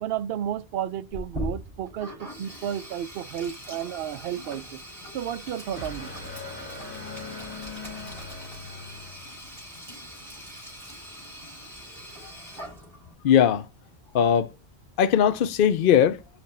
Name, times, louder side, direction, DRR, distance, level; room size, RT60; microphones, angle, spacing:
voice 1, 0.0-4.6 5.1-6.1, right 10 dB, 65° right, 0.7 m, -32 dB
Sink (filling or washing), 1.1-13.1, equal, 25° right, 4.5 m, -41 dB
sound 1, 5.1-9.7, left 3 dB, 10° left, 1.8 m, -41 dB
voice 2, 13.2-13.7 14.1-14.5 15.0-16.2, left 9 dB, 60° left, 0.7 m, -20 dB
5.9 x 5.1 x 4.2 m
omnidirectional pair, 1.1 m